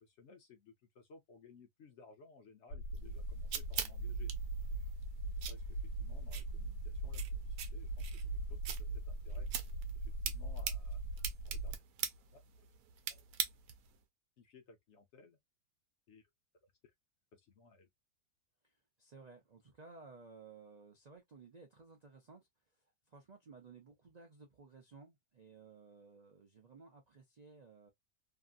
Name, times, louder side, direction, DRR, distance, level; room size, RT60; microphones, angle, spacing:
voice 1, 0.0-4.3 5.5-9.5 10.0-11.0 11.4-11.7 12.3-12.7 13.1-13.2 14.4-15.4 16.1-16.2 17.3-17.9, left 4 dB, 60° left, 0.8 m, -60 dB
sound 1, 2.7-11.7, right 2 dB, 75° left, 1.2 m, -40 dB
sound 2, 2.9-14.0, right 9 dB, 80° right, 1.1 m, -44 dB
voice 2, 18.6-27.9, right 4 dB, 55° right, 0.4 m, -57 dB
2.8 x 2.5 x 2.3 m
omnidirectional pair, 1.6 m